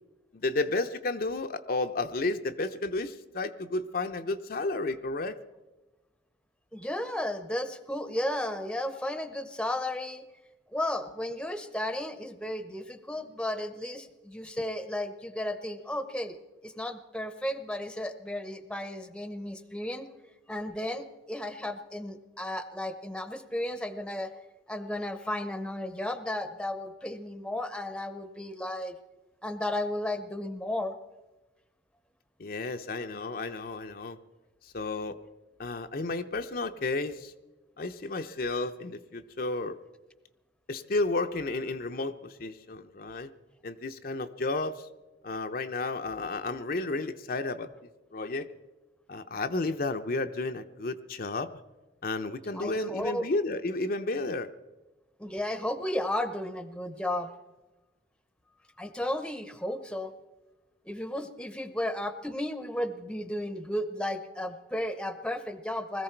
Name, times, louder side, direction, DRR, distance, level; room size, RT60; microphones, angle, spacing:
voice 1, 0.3-5.4 32.4-34.2 34.6-35.2 35.6-37.3 37.8-39.8 40.7-43.3 43.6-44.9 45.2-47.7 48.1-48.5 49.1-51.5 52.0-54.5, left 2 dB, 50° left, 7 dB, 0.6 m, -32 dB
voice 2, 6.7-10.2 10.7-16.4 16.6-20.1 20.5-24.3 24.7-28.9 29.4-31.0 52.5-53.2 55.2-57.3 58.8-60.1 60.9-66.0, left 1 dB, 5° left, 11 dB, 0.8 m, -34 dB
20.5 x 14.5 x 4.5 m, 1.1 s
head